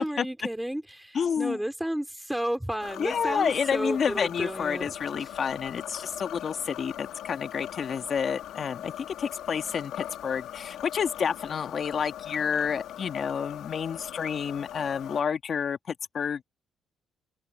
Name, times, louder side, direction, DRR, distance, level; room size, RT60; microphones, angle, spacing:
voice 1, 0.0-4.9, right 1 dB, 5° right, 4.1 m, -32 dB
voice 2, 1.1-1.6 3.0-16.4, left 7 dB, 50° left, 2.1 m, -29 dB
sound 1, 2.8-15.2, left 11 dB, 85° left, 1.9 m, -41 dB
cardioid pair, 90°, 0 cm